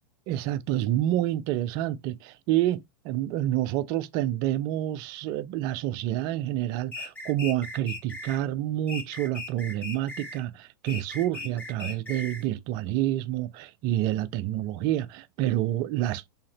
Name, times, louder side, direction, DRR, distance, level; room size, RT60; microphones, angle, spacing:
voice 1, 0.3-16.3, right 13 dB, 35° right, 0.4 m, -28 dB
sound 1, 6.9-8.4 8.9-10.4 10.9-12.5, left 2 dB, 10° left, 1.2 m, -38 dB
3.7 x 2.8 x 2.9 m
figure-of-eight pair, 90°, 12 cm